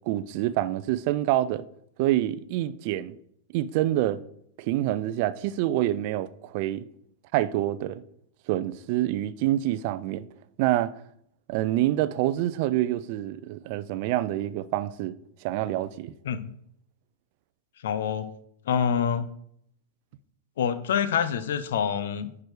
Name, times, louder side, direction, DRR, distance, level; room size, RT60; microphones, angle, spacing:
voice 1, 0.1-1.6 2.0-3.1 3.5-4.2 4.6-6.8 7.3-8.0 8.5-10.2 10.6-10.9 11.5-15.1 15.4-16.1, right 14 dB, 50° right, 0.4 m, -26 dB
voice 2, 17.8-18.3 18.7-19.3 20.6-22.4, left 8 dB, 60° left, 0.7 m, -26 dB
10.5 x 4.8 x 4.8 m
figure-of-eight pair, 95°, 0 cm